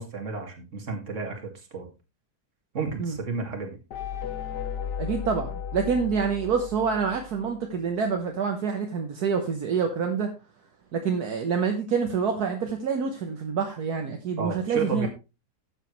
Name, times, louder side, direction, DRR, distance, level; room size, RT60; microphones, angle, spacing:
voice 1, 0.0-1.9 2.7-3.8 14.4-15.1, right 4 dB, 45° right, 3 dB, 2.4 m, -32 dB
sound 1, 3.9-7.7, left 7 dB, 80° left, 1.6 m, -35 dB
voice 2, 5.0-10.3 10.9-15.1, right 6 dB, 70° right, 4 dB, 1.6 m, -27 dB
12.5 x 8.2 x 3.1 m, 0.28 s
omnidirectional pair, 1.7 m